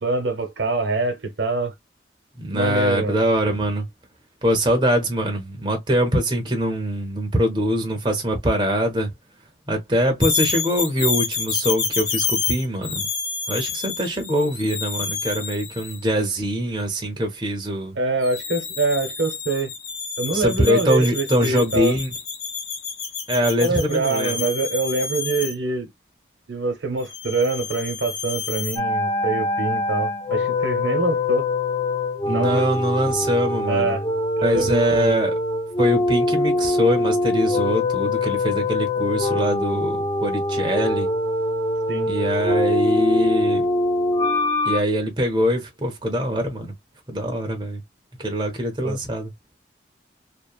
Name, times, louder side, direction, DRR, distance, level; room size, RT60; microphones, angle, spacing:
voice 1, 0.0-1.7 2.5-3.2 18.0-19.7 20.2-22.0 23.6-25.9 26.5-31.4 32.3-32.6 33.7-34.1 34.4-35.2 41.9-42.1 48.8-49.0, right 3 dB, 80° right, 0.8 m, -24 dB
voice 2, 2.4-3.9 4.4-9.1 9.7-13.1 13.5-18.0 20.3-22.1 23.3-24.4 32.3-34.0 34.4-35.3 35.8-41.1 42.1-43.6 44.6-46.7 47.1-47.8 48.2-49.3, equal, 25° right, 0.6 m, -23 dB
sound 1, 10.2-16.1 18.2-25.5 27.0-28.8, left 6 dB, 70° left, 1.0 m, -29 dB
sound 2, 28.8-44.8, left 2 dB, 20° left, 0.4 m, -23 dB
2.8 x 2.1 x 2.3 m
head